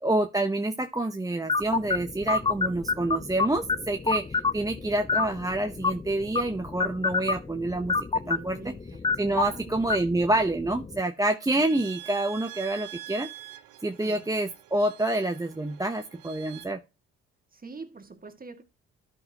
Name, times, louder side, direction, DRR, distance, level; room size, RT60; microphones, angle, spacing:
voice 1, 0.0-8.0 8.3-8.6 9.2-13.3 13.8-16.8, right 2 dB, 10° right, 0.8 m, -27 dB
sound 1, 1.5-11.0, left 4 dB, 15° left, 0.7 m, -29 dB
voice 2, 8.2-9.0 9.3-9.9 14.0-14.2 17.5-18.6, right 3 dB, 30° right, 2.0 m, -44 dB
sound 2, 11.6-16.6, right 16 dB, 80° right, 1.0 m, -45 dB
13.0 x 6.3 x 2.9 m
supercardioid pair, 60°, 31 cm